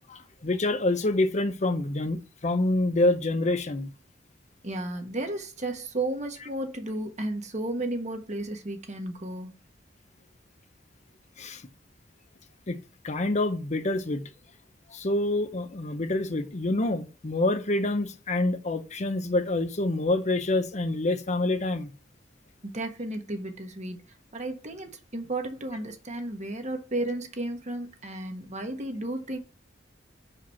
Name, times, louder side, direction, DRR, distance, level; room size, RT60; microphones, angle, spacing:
voice 1, 0.1-3.9 11.4-11.7 12.7-12.8 13.0-14.2 14.9-21.9, left 2 dB, 40° left, 0.7 m, -27 dB
voice 2, 4.6-9.5 22.6-24.0 24.3-29.4, right 2 dB, 40° right, 1.4 m, -33 dB
6.0 x 5.0 x 5.8 m
head